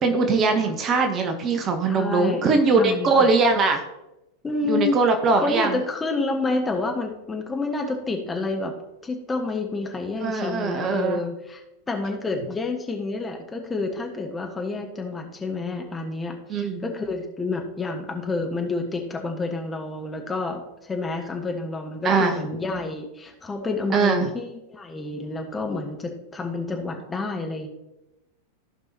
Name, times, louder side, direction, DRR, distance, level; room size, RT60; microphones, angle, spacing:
voice 1, 0.0-3.8 4.7-5.7 10.2-11.2 16.5-16.8 22.0-22.4 23.9-24.3, right 4 dB, 30° right, 5 dB, 1.1 m, -21 dB
voice 2, 1.9-3.3 4.4-5.0 5.4-8.7 9.0-11.6 11.9-27.7, left 3 dB, 15° left, 3 dB, 1.3 m, -29 dB
15.0 x 5.4 x 2.8 m, 0.93 s
figure-of-eight pair, 90°, 0 cm